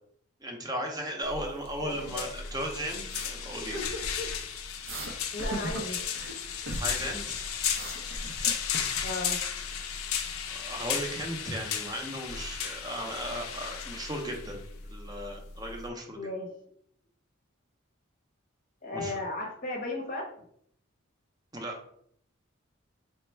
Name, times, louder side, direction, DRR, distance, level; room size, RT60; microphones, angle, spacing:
voice 1, 0.4-3.8 6.8-7.4 10.5-16.2 18.9-19.2 21.5-21.8, right 1 dB, 20° right, 2 dB, 0.6 m, -36 dB
sound 1, 1.2-15.9, left 7 dB, 85° left, 0.5 m, -35 dB
voice 2, 1.8-2.2 5.3-6.0 9.0-9.4 16.1-16.5 18.8-20.3, left 2 dB, 40° left, 0 dB, 0.7 m, -35 dB
sound 2, 3.1-3.3 3.7-4.4 4.9-5.1 5.4-6.4 6.7-7.2 7.5-8.8, right 1 dB, 65° right, 0.6 m, -37 dB
3.3 x 2.1 x 4.3 m, 0.68 s
head